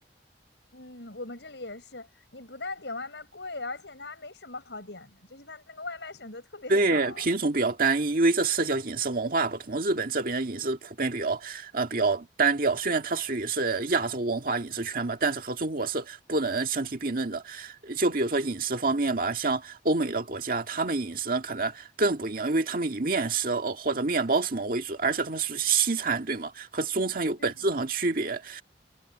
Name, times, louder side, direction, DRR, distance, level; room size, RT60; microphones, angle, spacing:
voice 1, 0.7-7.3 27.4-27.5, left 3 dB, 70° left, 6.9 m, -40 dB
voice 2, 6.7-28.6, right 3 dB, 50° right, 1.8 m, -27 dB
head